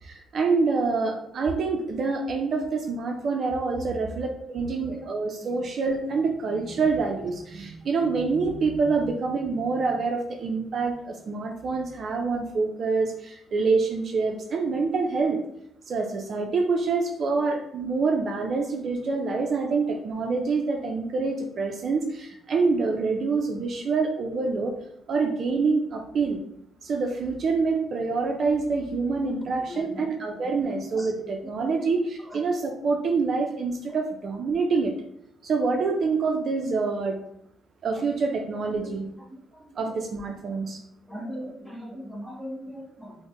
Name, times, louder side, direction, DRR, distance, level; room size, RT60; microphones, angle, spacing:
voice 1, 0.0-15.4 15.9-24.7 25.1-26.4 26.8-34.9 35.4-37.2 37.8-39.0 39.8-40.8, right 4 dB, 55° right, 3 dB, 0.4 m, -26 dB
voice 2, 29.7-30.0 31.0-31.1 38.8-38.9 39.3-39.4 41.1-43.2, equal, 5° right, -1 dB, 0.8 m, -38 dB
4.0 x 2.1 x 3.0 m, 0.75 s
cardioid pair, 90°, 0 cm